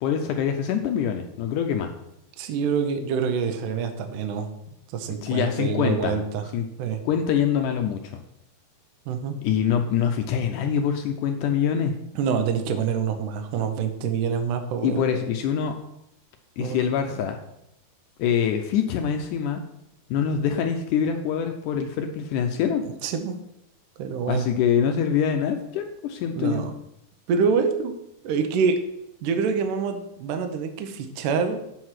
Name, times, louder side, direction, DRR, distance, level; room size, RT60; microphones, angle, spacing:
voice 1, 0.0-1.9 5.2-6.2 6.5-6.7 7.0-8.2 9.4-11.9 14.8-15.7 16.6-17.4 18.2-19.6 20.1-22.8 24.3-26.6, left 8 dB, 85° left, 5 dB, 1.8 m, -24 dB
voice 2, 2.4-4.5 4.9-6.5 6.8-7.0 9.1-9.4 12.2-15.0 16.6-17.1 22.8-23.4 24.0-24.5 26.3-26.7 27.3-27.9 28.2-28.8 29.2-31.6, right 6 dB, 75° right, 6 dB, 2.1 m, -26 dB
8.0 x 4.7 x 5.8 m, 0.82 s
omnidirectional pair, 4.3 m